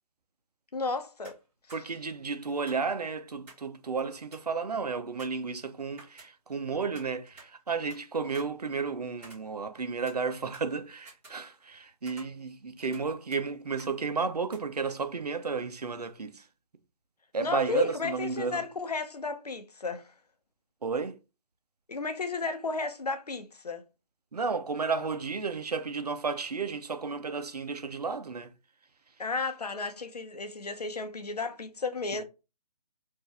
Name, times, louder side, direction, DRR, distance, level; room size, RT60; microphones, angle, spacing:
voice 1, 0.7-1.4 17.4-20.1 21.9-23.8 29.2-32.2, left 4 dB, 80° left, 0.9 m, -33 dB
sound 1, 1.2-1.4 1.7-1.8 2.7-3.7 4.0-4.1 4.3-4.6 5.2-6.6 6.9-8.0 8.3-9.8 10.1-11.8 12.1-13.1 13.3-13.4 13.8-13.9 14.5-14.6, right 2 dB, 10° right, 1.9 m, -53 dB
voice 2, 1.7-16.5 17.3-18.7 20.8-21.2 24.3-28.5 32.1-32.2, right 4 dB, 85° right, 0.7 m, -33 dB
4.5 x 2.6 x 3.4 m
figure-of-eight pair, 150°, 20 cm